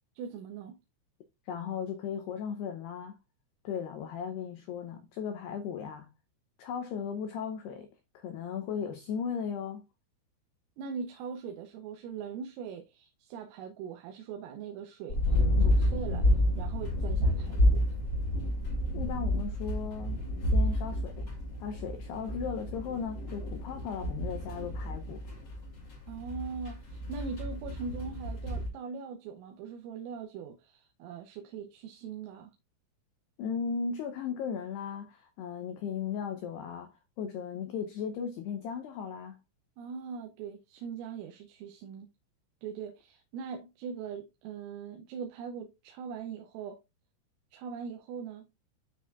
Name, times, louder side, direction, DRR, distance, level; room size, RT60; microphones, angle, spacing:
voice 1, 0.2-0.8 10.8-16.3 16.6-17.9 26.1-32.5 39.8-42.1 42.6-46.8 47.5-48.5, right 6 dB, 85° right, 3.5 m, -41 dB
voice 2, 1.5-3.2 3.6-6.1 6.6-9.8 18.9-21.3 21.6-25.2 33.4-39.4, left 7 dB, 90° left, 2.3 m, -36 dB
sound 1, 15.1-28.7, left 1 dB, 30° left, 2.2 m, -30 dB
12.5 x 4.6 x 2.4 m
omnidirectional pair, 5.9 m